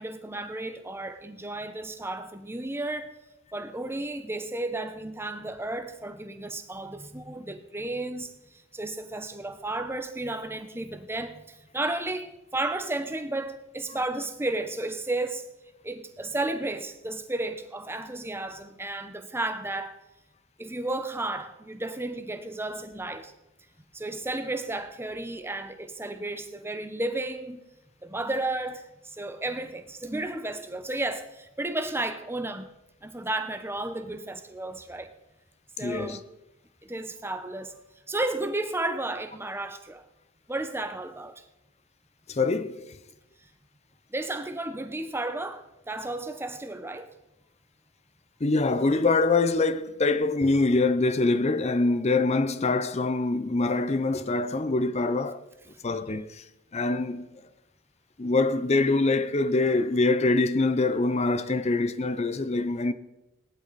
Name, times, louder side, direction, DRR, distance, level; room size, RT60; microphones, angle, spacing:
voice 1, 0.0-3.2 3.5-15.4 15.8-20.0 20.6-23.3 23.9-27.6 28.0-32.7 33.0-35.1 35.8-36.2 36.8-37.8 38.1-40.0 40.5-41.5 44.1-47.1, right 2 dB, 10° right, 0.9 m, -33 dB
voice 2, 35.8-36.2 42.3-42.9 48.4-55.4 55.8-56.4 56.7-57.3 58.2-62.9, left 3 dB, 30° left, 0.6 m, -24 dB
18.0 x 11.5 x 4.1 m
head